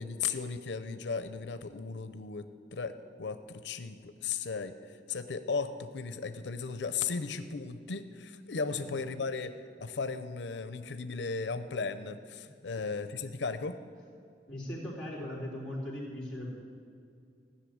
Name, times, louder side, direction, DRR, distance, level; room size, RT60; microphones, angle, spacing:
voice 1, 0.0-2.5 2.7-9.5 9.8-13.8, left 5 dB, 85° left, 11 dB, 0.6 m, -36 dB
voice 2, 14.5-16.5, left 1 dB, 5° left, -7 dB, 3.5 m, -39 dB
15.5 x 6.6 x 9.4 m, 2.3 s
head